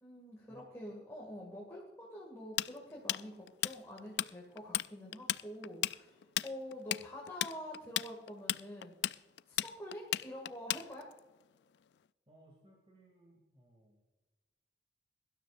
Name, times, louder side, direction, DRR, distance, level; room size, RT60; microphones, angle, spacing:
voice 1, 0.0-9.2 9.5-11.1, equal, 15° left, -3 dB, 2.2 m, -47 dB
Tools, 2.6-4.3 4.6-4.9 5.1-11.2, left 13 dB, 80° left, 0.3 m, -34 dB
voice 2, 12.3-14.1, right 1 dB, 30° right, -2 dB, 2.5 m, -63 dB
22.5 x 12.5 x 2.5 m, 1.2 s
head